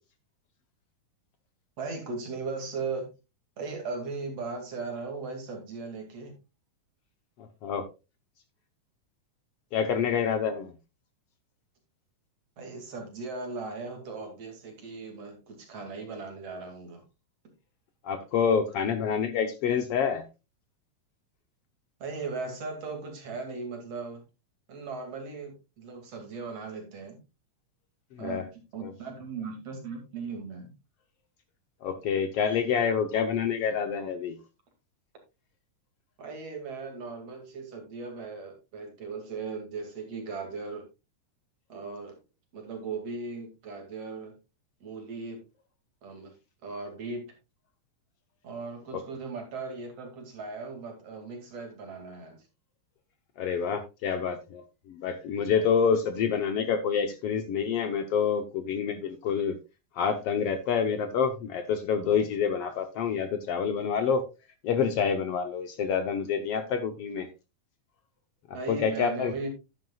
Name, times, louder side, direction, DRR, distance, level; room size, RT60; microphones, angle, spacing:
voice 1, 1.8-3.1 3.6-6.3 12.6-17.0 22.0-24.2 24.7-27.2 28.2-30.7 36.2-40.8 41.7-42.1 42.5-44.3 44.8-45.4 46.0-46.3 46.6-47.2 48.4-52.4 68.5-69.5, right 4 dB, 55° right, 3 dB, 3.3 m, -38 dB
voice 2, 9.7-10.7 18.0-20.2 28.2-28.4 28.8-28.9 31.8-34.4 48.9-49.0 53.4-59.6 60.0-64.2 64.6-67.3 68.7-69.3, left 7 dB, 70° left, 8 dB, 1.5 m, -27 dB
11.0 x 10.5 x 2.3 m, 0.27 s
omnidirectional pair, 3.6 m